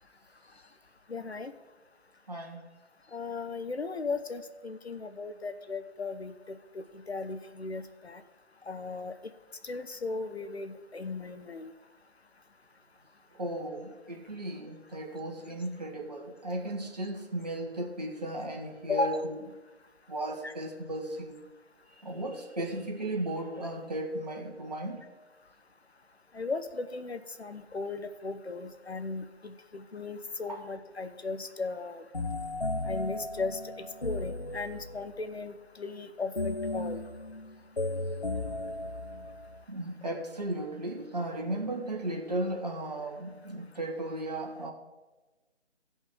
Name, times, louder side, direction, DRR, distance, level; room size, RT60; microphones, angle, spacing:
voice 1, 1.1-1.5 3.1-8.2 8.7-9.1 9.6-11.7 18.9-19.2 20.4-20.5 26.3-32.0 32.9-37.0, left 3 dB, 65° left, 10 dB, 1.0 m, -36 dB
voice 2, 2.3-2.6 13.4-19.3 20.1-21.4 22.0-25.0 30.5-30.6 39.7-44.7, right 1 dB, 35° right, 1 dB, 1.5 m, -35 dB
sound 1, 32.1-35.1 36.4-39.6, left 2 dB, 45° left, 0.4 m, -35 dB
16.0 x 5.5 x 4.9 m, 1.2 s
figure-of-eight pair, 155°, 34 cm